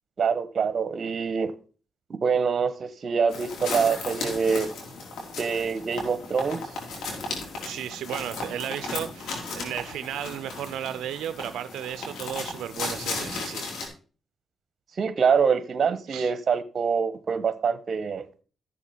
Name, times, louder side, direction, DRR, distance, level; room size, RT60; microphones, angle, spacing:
voice 1, 0.2-1.5 2.2-4.7 5.4-6.6 15.0-18.2, right 6 dB, 55° right, 1.3 m, -25 dB
sound 1, 3.3-13.9, left 3 dB, 80° left, 3.9 m, -35 dB
voice 2, 7.6-13.6 16.1-16.3, right 10 dB, 85° right, 0.4 m, -34 dB
13.5 x 7.2 x 4.4 m
cardioid pair, 65°, 0 cm